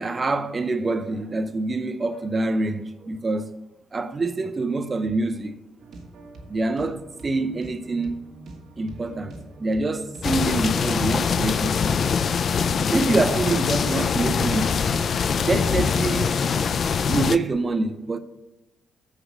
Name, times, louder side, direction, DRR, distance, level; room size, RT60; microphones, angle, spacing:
voice 1, 0.0-3.5 3.9-5.6 6.5-8.2 8.8-11.9 12.9-14.9 15.5-16.4 17.1-18.2, right 3 dB, 30° right, 0.5 m, -26 dB
sound 1, 5.8-11.4, right 2 dB, 60° right, 1.5 m, -44 dB
sound 2, 10.2-17.4, left 6 dB, 50° left, 0.3 m, -23 dB
7.6 x 4.9 x 6.4 m
cardioid pair, 90°, 0 cm